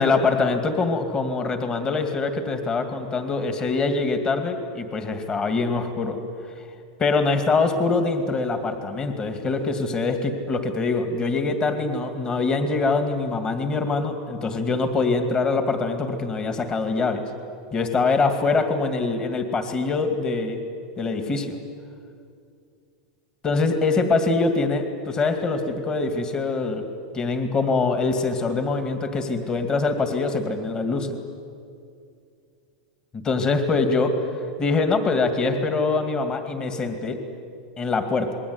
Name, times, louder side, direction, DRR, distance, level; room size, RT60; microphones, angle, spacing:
voice 1, 0.0-6.2 7.0-17.2 17.7-20.6 21.0-21.6 23.4-26.8 27.1-31.2 33.1-34.1 34.6-37.2 37.8-38.3, left 3 dB, 20° left, 7 dB, 2.4 m, -24 dB
27.5 x 21.5 x 9.7 m, 2.4 s
supercardioid pair, 145°, 4 cm